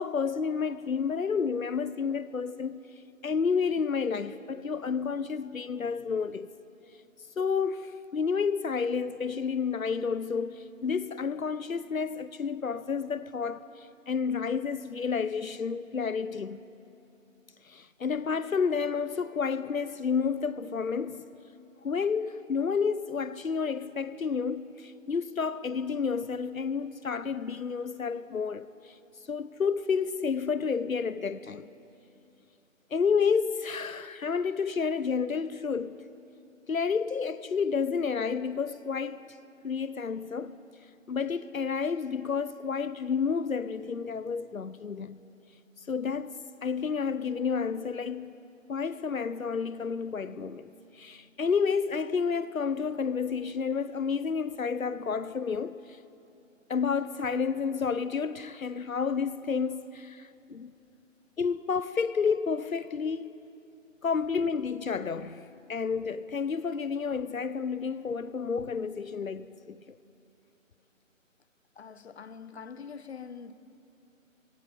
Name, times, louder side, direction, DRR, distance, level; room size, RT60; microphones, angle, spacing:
voice 1, 0.0-2.8 3.2-6.5 7.4-16.6 17.7-21.2 21.8-28.9 29.3-31.7 32.9-36.0 36.7-39.2 39.6-40.6 41.1-45.3 45.9-48.3 48.7-55.8 56.7-60.7 61.4-63.3 64.0-70.0, left 5 dB, 90° left, 0.8 m, -30 dB
voice 2, 71.8-73.5, left 6 dB, 55° left, 1.0 m, -44 dB
24.5 x 24.5 x 5.3 m
figure-of-eight pair, 150°, 40 cm